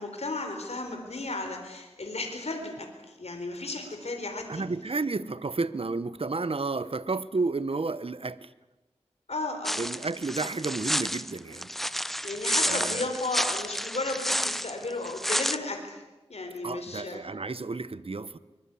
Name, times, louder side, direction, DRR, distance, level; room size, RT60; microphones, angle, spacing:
voice 1, 0.0-4.6 9.3-9.8 12.2-16.0 16.3-17.2, left 2 dB, 75° left, 4 dB, 4.2 m, -34 dB
voice 2, 4.5-8.5 9.8-11.7 12.7-13.0 16.6-18.4, right 3 dB, 60° right, 16 dB, 1.0 m, -31 dB
sound 1, 9.6-15.6, equal, ahead, 0.9 m, -30 dB
24.0 x 22.0 x 8.5 m, 1.1 s
wide cardioid pair, 55°, 11 cm